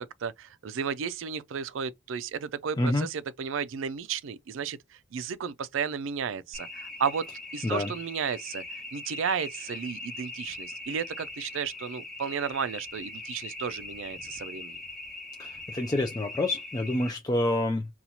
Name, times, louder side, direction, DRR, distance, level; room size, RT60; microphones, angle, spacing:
voice 1, 0.0-4.8 5.1-7.3 7.5-8.6 8.9-14.8, right 6 dB, 85° right, 0.4 m, -33 dB
voice 2, 2.8-3.1 7.6-7.9 15.4-17.9, left 1 dB, 20° left, 0.3 m, -27 dB
sound 1, 6.5-17.1, left 2 dB, 5° left, 0.9 m, -41 dB
2.8 x 2.3 x 4.1 m
head